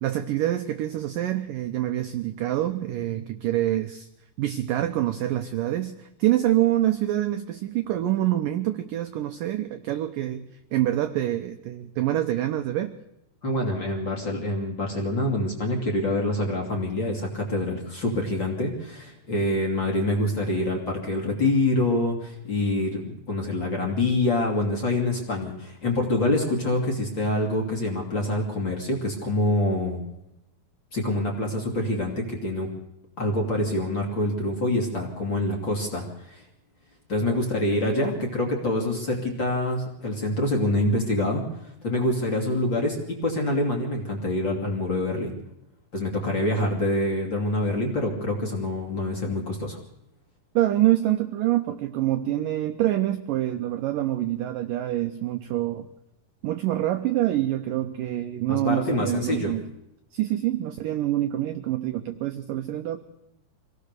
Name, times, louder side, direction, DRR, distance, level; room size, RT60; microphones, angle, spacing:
voice 1, 0.0-4.1 4.4-10.5 10.7-12.9 37.2-37.4 50.6-55.9 56.4-59.6 60.1-63.0, right 13 dB, 80° right, 7 dB, 2.0 m, -26 dB
voice 2, 13.4-30.0 30.9-32.7 33.2-36.4 37.1-41.4 41.8-45.3 45.9-49.8 58.5-59.6, left 1 dB, 30° left, 0 dB, 2.6 m, -26 dB
25.5 x 17.5 x 6.7 m, 0.85 s
omnidirectional pair, 5.1 m